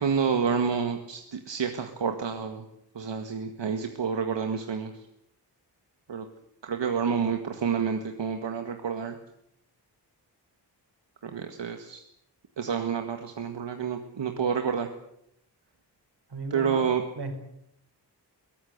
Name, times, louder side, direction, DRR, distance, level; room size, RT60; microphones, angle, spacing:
voice 1, 0.0-2.6 2.9-4.9 6.1-6.3 6.6-9.2 11.2-12.0 12.6-14.9 16.5-17.0, right 6 dB, 85° right, 5 dB, 2.0 m, -29 dB
voice 2, 16.3-16.8 17.2-17.3, right 3 dB, 65° right, 7 dB, 5.1 m, -35 dB
23.0 x 19.0 x 8.1 m, 0.75 s
wide cardioid pair, 120°, 42 cm